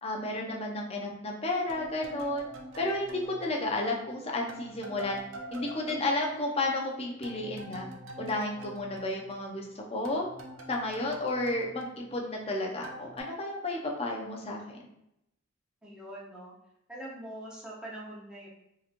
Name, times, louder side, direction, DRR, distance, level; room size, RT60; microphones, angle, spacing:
voice 1, 0.0-2.5 2.8-5.2 5.5-7.9 8.2-10.3 10.7-14.8, left 2 dB, 30° left, 0 dB, 0.6 m, -32 dB
sound 1, 1.7-4.1 4.5-9.7 10.0-12.5 12.8-13.2, right 1 dB, 85° right, 0.5 m, -46 dB
voice 2, 15.8-16.5 16.9-18.5, right 1 dB, 5° right, -6 dB, 0.9 m, -43 dB
3.8 x 3.0 x 2.5 m, 0.82 s
head